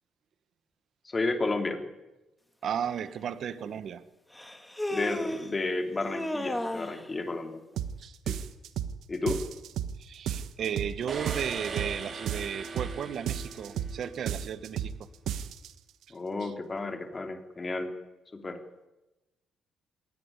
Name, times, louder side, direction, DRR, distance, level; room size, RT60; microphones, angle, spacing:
voice 1, 1.0-1.8 4.9-7.6 8.3-8.4 9.1-9.4 16.1-17.9 18.3-18.6, left 3 dB, 25° left, 3.2 m, -32 dB
voice 2, 2.6-4.0 8.0-8.1 10.0-14.9 16.4-16.5, right 8 dB, 65° right, 1.4 m, -34 dB
Human voice, 3.0-3.1 4.3-5.5 6.0-7.0, left 1 dB, 10° left, 2.1 m, -33 dB
sound 1, 7.8-8.0 8.3-9.0 9.3-10.0 10.3-11.0 11.3-12.0 12.3-13.0 13.3-14.0 14.3-15.0 15.3-15.7, right 9 dB, 80° right, 1.3 m, -33 dB
sound 2, 11.1-14.2, right 4 dB, 45° right, 4.1 m, -40 dB
21.0 x 18.5 x 9.8 m
cardioid pair, 90°, 0 cm